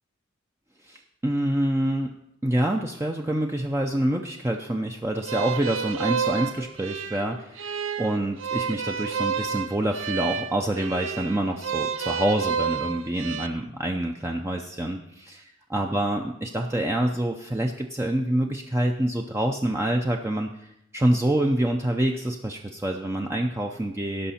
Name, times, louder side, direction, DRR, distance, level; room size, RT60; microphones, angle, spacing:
voice 1, 0.8-2.2 2.4-24.3, right 1 dB, 15° right, 2 dB, 0.5 m, -26 dB
sound 1, 5.2-13.5, right 7 dB, 75° right, 0.6 m, -30 dB
17.0 x 6.0 x 4.3 m, 0.81 s
head